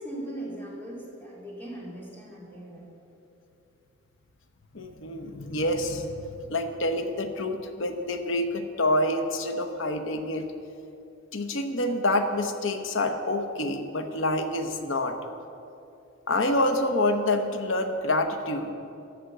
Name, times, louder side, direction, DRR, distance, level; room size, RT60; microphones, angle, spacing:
voice 1, 0.0-3.0, right 1 dB, 10° left, -5 dB, 2.4 m, -39 dB
voice 2, 4.7-6.2 6.5-10.5 11.3-15.1 16.3-18.7, left 1 dB, 80° left, 7 dB, 0.9 m, -27 dB
13.5 x 5.1 x 7.9 m, 2.7 s
head